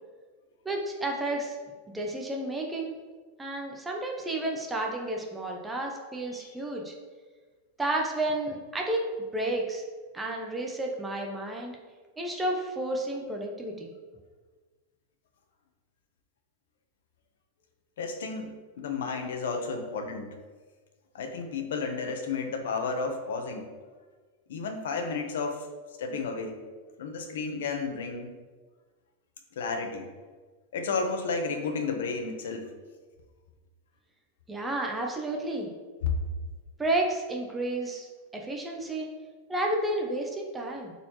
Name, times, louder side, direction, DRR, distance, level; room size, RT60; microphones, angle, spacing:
voice 1, 0.6-1.6 1.9-3.0 3.4-6.9 7.8-9.1 9.3-9.8 10.1-11.8 12.2-13.9 34.5-35.7 36.8-39.1 39.5-40.9, right 1 dB, 5° right, 0 dB, 0.6 m, -31 dB
voice 2, 18.0-20.3 21.1-23.7 24.5-25.7 26.0-26.6 27.0-28.3 29.6-30.1 30.7-32.6 36.0-36.1, left 4 dB, 90° left, 5 dB, 1.0 m, -32 dB
11.0 x 4.2 x 3.1 m, 1.4 s
supercardioid pair, 180°, 0 cm